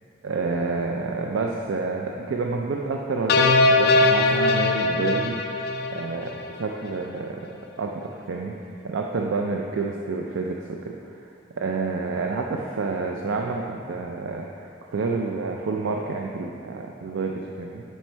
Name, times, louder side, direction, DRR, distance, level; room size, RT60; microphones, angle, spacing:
voice 1, 0.2-5.6 5.9-8.5 8.8-11.1 11.6-17.8, right 3 dB, 80° right, 1 dB, 0.4 m, -29 dB
sound 1, 3.3-6.6, left 2 dB, 50° left, 0.4 m, -21 dB
6.0 x 5.6 x 4.4 m, 2.6 s
head